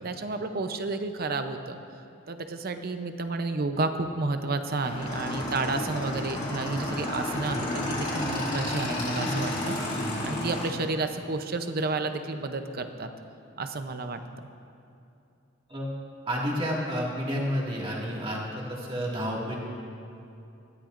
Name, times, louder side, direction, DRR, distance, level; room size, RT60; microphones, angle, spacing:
voice 1, 0.0-1.8 2.3-9.8 10.2-13.1 13.6-14.5, right 3 dB, 50° right, 8 dB, 0.7 m, -31 dB
Motorcycle / Engine, 4.8-10.7, left 1 dB, 35° left, 2.6 m, -31 dB
voice 2, 16.3-19.6, equal, 25° right, -3 dB, 2.0 m, -30 dB
19.5 x 13.5 x 2.6 m, 2.7 s
head